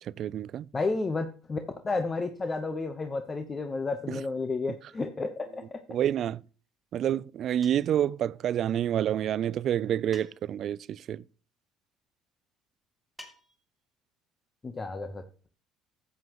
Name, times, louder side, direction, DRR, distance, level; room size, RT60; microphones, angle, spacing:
voice 1, 0.0-0.7 4.1-4.2 5.9-6.4 6.9-11.2, right 10 dB, 55° right, 0.3 m, -28 dB
voice 2, 0.7-5.8 14.6-15.2, left 3 dB, 25° left, 0.9 m, -32 dB
sound 1, 7.6-8.0 10.1-10.7 13.2-13.8, left 1 dB, 5° left, 2.3 m, -51 dB
12.5 x 8.1 x 3.0 m
cardioid pair, 105°, 0 cm